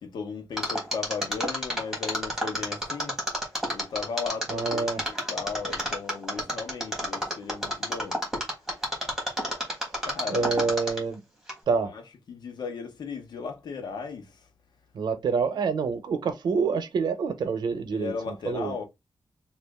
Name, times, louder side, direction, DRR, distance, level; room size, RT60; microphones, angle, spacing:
voice 1, 0.0-3.2 3.7-8.2 10.0-10.7 11.9-12.0 12.3-14.5 17.9-18.8, left 5 dB, 85° left, 0.9 m, -36 dB
Mechanisms, 0.6-11.1 11.5-11.6, equal, 5° right, 1.5 m, -29 dB
voice 2, 4.5-5.0 10.3-11.2 11.7-11.9 14.9-18.7, right 5 dB, 85° right, 0.7 m, -27 dB
3.1 x 2.5 x 3.5 m
wide cardioid pair, 125°, 7 cm